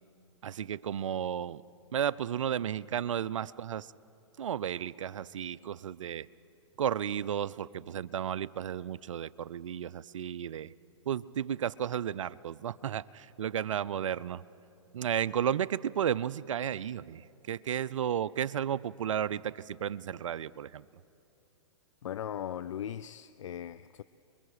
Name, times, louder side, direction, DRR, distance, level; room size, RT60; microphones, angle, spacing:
voice 1, 0.4-1.6 1.9-3.9 4.4-6.3 6.8-10.7 11.1-14.4 14.9-20.9, right 9 dB, 80° right, 0.5 m, -33 dB
voice 2, 22.0-24.0, left 10 dB, 75° left, 0.5 m, -38 dB
29.0 x 22.5 x 4.9 m
hypercardioid pair, 120°, 16 cm